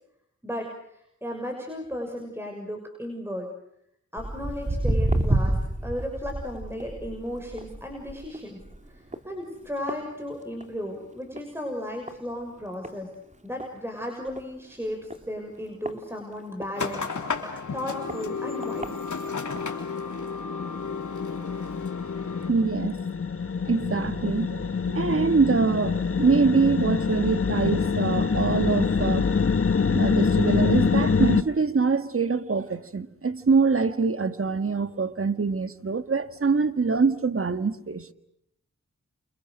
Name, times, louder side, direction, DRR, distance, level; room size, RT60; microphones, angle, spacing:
voice 1, 0.4-3.5 4.1-5.6 5.8-8.6 8.9-13.1 13.4-19.0, equal, 10° right, 6.5 m, -35 dB
Walk footsteps, 4.2-10.8 11.2-11.5 12.1-12.2 12.8-12.9 13.3-13.4 13.6-13.7 14.3-14.5 15.1-16.7 17.3-17.4 18.1-18.2 18.6-18.9 19.6-19.7, right 1 dB, 25° right, 3.1 m, -29 dB
sound 1, 16.7-22.5, left 5 dB, 80° left, 3.5 m, -33 dB
sound 2, 18.1-18.3 18.6-31.4, left 5 dB, 50° left, 1.2 m, -26 dB
voice 2, 22.5-23.0 23.7-29.3 29.9-38.1, right 4 dB, 45° right, 1.7 m, -24 dB
30.0 x 28.0 x 6.6 m
cardioid pair, 50°, 30 cm